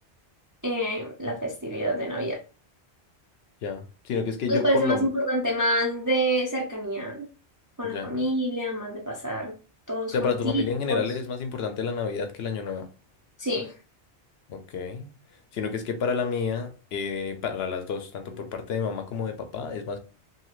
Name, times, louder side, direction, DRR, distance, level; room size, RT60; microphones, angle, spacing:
voice 1, 0.6-2.4 4.5-7.3 7.8-9.5 9.9-11.1 13.4-13.7, equal, 30° right, 0.3 m, -27 dB
voice 2, 3.6-5.1 7.8-8.3 10.1-12.9 14.5-15.1 15.5-20.0, left 5 dB, 70° left, 0.8 m, -30 dB
2.7 x 2.4 x 3.0 m
omnidirectional pair, 1.1 m